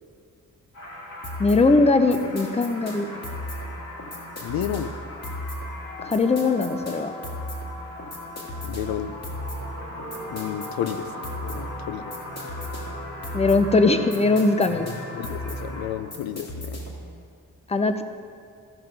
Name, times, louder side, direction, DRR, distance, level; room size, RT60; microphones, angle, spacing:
sound 1, 0.7-15.9, left 1 dB, 70° left, 2.6 m, -39 dB
sound 2, 1.2-17.1, equal, 45° left, 2.4 m, -36 dB
voice 1, 1.4-3.1 6.0-7.1 13.3-14.9 17.7-18.0, left 3 dB, 20° left, 8 dB, 0.6 m, -20 dB
voice 2, 4.4-5.0 8.6-9.1 10.3-12.0 14.7-16.8, left 10 dB, 90° left, 11 dB, 0.5 m, -32 dB
14.0 x 5.6 x 5.2 m, 2.3 s
cardioid pair, 80°, 35 cm